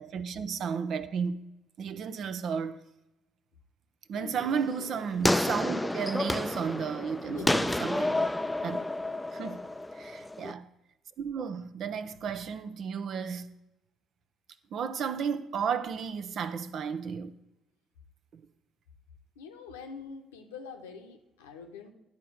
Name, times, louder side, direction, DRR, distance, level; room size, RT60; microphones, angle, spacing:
voice 1, 0.0-1.5 1.8-2.8 4.1-8.2 8.6-8.8 9.3-9.6 10.0-10.7 11.2-13.5 14.7-17.3 18.3-18.4, right 6 dB, 60° right, 0.6 m, -33 dB
voice 2, 4.1-4.4 7.3-7.7 9.4-9.6 19.3-21.9, left 5 dB, 85° left, 0.9 m, -44 dB
sound 1, 4.4-10.5, left 1 dB, 10° left, 0.4 m, -30 dB
10.5 x 4.5 x 7.7 m
hypercardioid pair, 50°, 0 cm